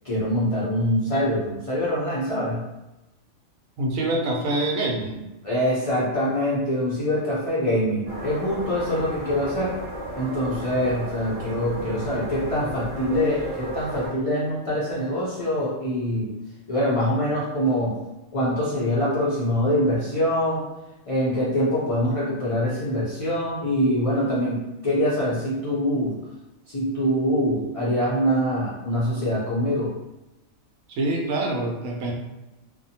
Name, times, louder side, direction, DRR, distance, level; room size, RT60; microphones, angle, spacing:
voice 1, 0.0-2.6 5.4-9.7 10.2-16.3 16.7-18.0 18.3-20.6 21.1-26.2 26.7-29.9, equal, 65° left, -8 dB, 0.3 m, -24 dB
voice 2, 3.8-5.2 30.9-32.1, right 2 dB, 80° right, 0 dB, 1.0 m, -25 dB
sound 1, 8.1-14.1, right 1 dB, 50° right, 1.1 m, -34 dB
2.6 x 2.1 x 2.7 m, 1.0 s
omnidirectional pair, 1.4 m